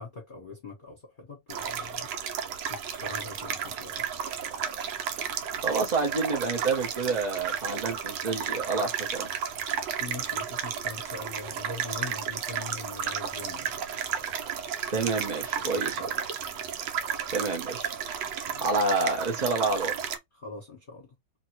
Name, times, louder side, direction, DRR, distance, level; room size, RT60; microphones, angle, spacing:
voice 1, 0.0-2.1 2.7-4.1 10.0-13.7 15.6-16.0 18.5-18.6 20.3-21.1, left 3 dB, 35° left, 0.9 m, -42 dB
sound 1, 1.5-20.2, right 8 dB, 90° right, 1.3 m, -33 dB
voice 2, 5.6-9.3 14.9-16.0 17.3-17.9 18.6-20.1, right 3 dB, 65° right, 0.4 m, -28 dB
2.7 x 2.6 x 2.9 m
omnidirectional pair, 1.9 m